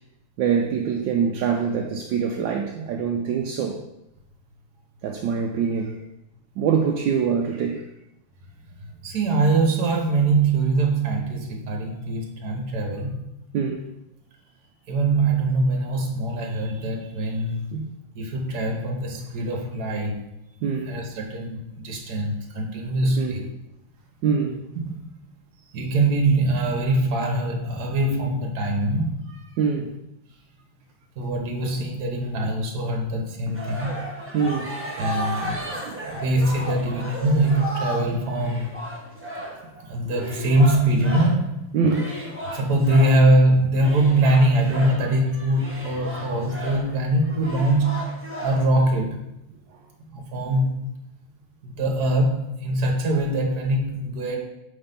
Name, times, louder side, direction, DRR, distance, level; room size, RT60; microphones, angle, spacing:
voice 1, 0.4-3.8 5.0-6.0 6.6-7.8 13.5-13.9 17.7-17.9 20.6-20.9 23.2-23.4 24.2-24.6 29.6-29.9 34.3-34.8 35.8-36.0 41.7-42.1, right 6 dB, 75° right, 2 dB, 1.2 m, -24 dB
voice 2, 9.0-13.2 14.9-17.8 18.1-20.2 20.8-23.5 24.7-25.0 25.7-29.4 31.2-34.1 35.0-35.6 36.1-38.8 39.9-41.6 42.5-48.0 48.4-49.2 50.1-50.8 51.6-54.4, right 2 dB, 60° right, 1 dB, 1.5 m, -23 dB
sound 1, 33.5-41.5 41.9-43.2 43.8-48.8, equal, 10° right, 0.6 m, -34 dB
5.5 x 4.0 x 5.2 m, 0.85 s
omnidirectional pair, 2.1 m